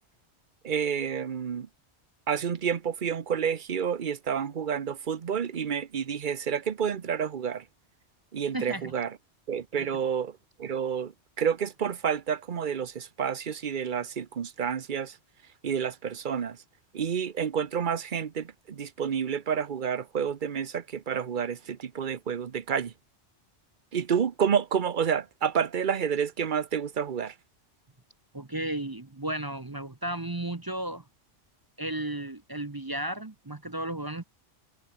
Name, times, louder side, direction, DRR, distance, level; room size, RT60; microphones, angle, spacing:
voice 1, 0.6-1.7 2.3-7.6 8.3-9.2 9.5-15.2 15.6-16.6 16.9-22.9 23.9-27.3, right 7 dB, 45° right, 1.0 m, -29 dB
voice 2, 8.5-8.9 9.8-9.9 28.3-31.0 31.8-34.2, right 1 dB, 20° right, 0.9 m, -34 dB
omnidirectional pair, 1.2 m